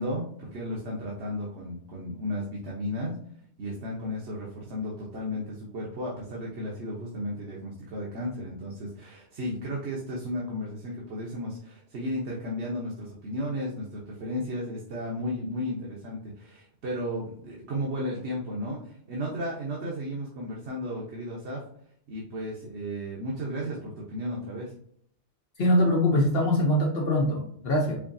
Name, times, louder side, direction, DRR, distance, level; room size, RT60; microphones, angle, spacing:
voice 1, 0.0-3.1 3.6-21.6 22.1-24.7, equal, 80° right, -3 dB, 1.2 m, -34 dB
voice 2, 25.6-28.0, left 1 dB, 65° left, -2 dB, 1.0 m, -23 dB
4.8 x 2.7 x 2.6 m, 0.64 s
omnidirectional pair, 1.1 m